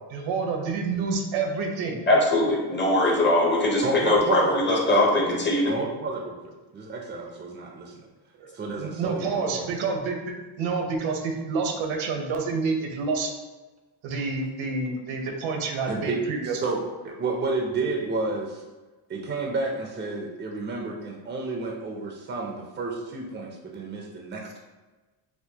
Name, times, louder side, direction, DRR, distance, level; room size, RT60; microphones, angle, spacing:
voice 1, 0.1-2.0 8.4-13.3 14.0-16.8, right 4 dB, 75° right, 2 dB, 0.8 m, -28 dB
voice 2, 2.1-5.7, left 2 dB, 25° left, -1 dB, 0.6 m, -21 dB
voice 3, 3.8-5.4 5.6-6.4 6.7-8.0 8.5-9.7 15.9-16.8 17.0-18.6 19.1-24.6, right 3 dB, 25° right, 0 dB, 0.4 m, -30 dB
4.4 x 2.1 x 2.8 m, 1.2 s
cardioid pair, 115°, 47 cm